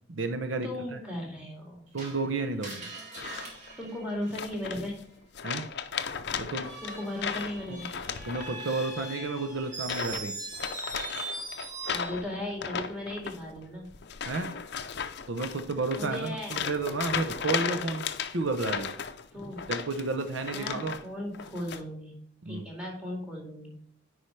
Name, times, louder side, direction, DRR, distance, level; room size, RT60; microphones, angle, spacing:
voice 1, 0.1-0.7 1.9-2.8 5.4-5.7 6.4-6.7 8.3-10.3 14.2-14.5 15.3-18.9 19.7-21.0 22.4-22.6, right 3 dB, 70° right, 7 dB, 0.7 m, -31 dB
voice 2, 0.6-1.9 3.8-5.1 6.8-7.9 11.9-13.9 16.0-16.6 19.3-19.7 20.5-22.2 22.5-23.7, left 1 dB, 5° right, -1 dB, 2.1 m, -36 dB
Screech, 2.0-4.8 6.5-12.2, right 2 dB, 35° right, 2.3 m, -41 dB
sound 1, 3.2-3.7 4.3-5.0 5.3-8.8 9.1-9.4 9.8-10.3 10.5-21.0 21.3-21.8, left 7 dB, 55° left, 0.6 m, -36 dB
9.9 x 4.8 x 3.2 m, 0.67 s
head